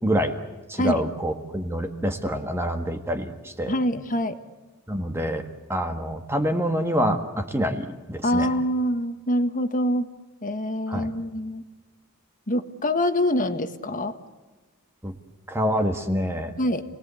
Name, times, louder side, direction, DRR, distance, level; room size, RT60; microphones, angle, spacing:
voice 1, 0.0-0.4 0.7-3.7 4.9-5.4 5.7-8.5 10.9-11.1 15.0-15.1 15.5-16.5, equal, 10° right, 5 dB, 1.6 m, -26 dB
voice 2, 3.7-4.4 8.2-10.1 10.4-11.6 12.5-14.1 16.6-16.8, left 1 dB, 40° left, 9 dB, 1.7 m, -25 dB
30.0 x 20.0 x 8.4 m, 1.2 s
head